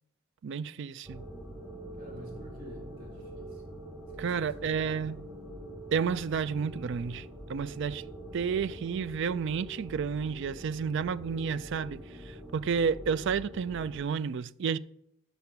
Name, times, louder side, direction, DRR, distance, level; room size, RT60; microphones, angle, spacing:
voice 1, 0.4-1.2 4.2-5.2 5.9-8.0 8.3-14.8, right 6 dB, 60° right, 0.4 m, -31 dB
sound 1, 1.0-14.0, right 1 dB, 5° right, 2.6 m, -44 dB
voice 2, 2.0-3.6 4.2-5.1, left 1 dB, 45° right, 4.0 m, -49 dB
9.4 x 6.8 x 5.8 m
head